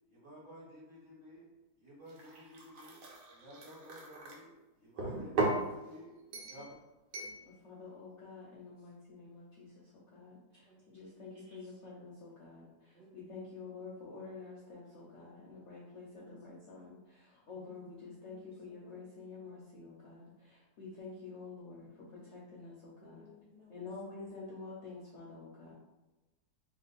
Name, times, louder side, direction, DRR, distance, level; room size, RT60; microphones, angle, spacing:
voice 1, 0.1-1.5 1.8-3.0 3.3-6.2 6.4-6.8, left 1 dB, 35° right, -7 dB, 1.2 m, -53 dB
sound 1, 2.1-4.4 5.0-5.7 6.3-6.7 7.1-7.4, right 2 dB, 80° right, 1.3 m, -36 dB
voice 2, 7.6-21.9 22.1-23.2 23.7-25.7, left 4 dB, 60° left, -5 dB, 0.7 m, -49 dB
voice 3, 10.5-11.8 12.9-13.6 14.9-15.2 15.9-16.8 17.5-17.9 18.2-19.2 22.1-22.2 23.0-23.9 25.6-25.7, equal, 55° right, -8 dB, 0.8 m, -61 dB
2.8 x 2.4 x 3.9 m, 1.1 s
omnidirectional pair, 1.8 m